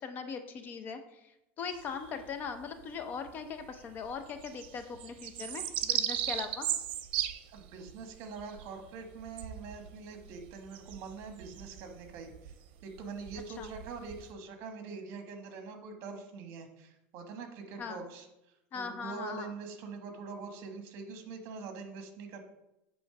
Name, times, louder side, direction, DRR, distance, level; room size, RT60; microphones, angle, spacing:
voice 1, 0.0-6.7 13.6-13.7 17.8-18.0 18.7-19.5, left 5 dB, 35° left, 8 dB, 0.6 m, -40 dB
sound 1, 1.7-2.8 3.2-3.3 3.6-14.3, right 12 dB, 80° right, 0.6 m, -37 dB
voice 2, 7.5-12.5 12.8-18.3 18.7-22.4, right 4 dB, 55° right, 6 dB, 1.3 m, -44 dB
7.9 x 3.1 x 5.8 m, 0.87 s
supercardioid pair, 150°, 6 cm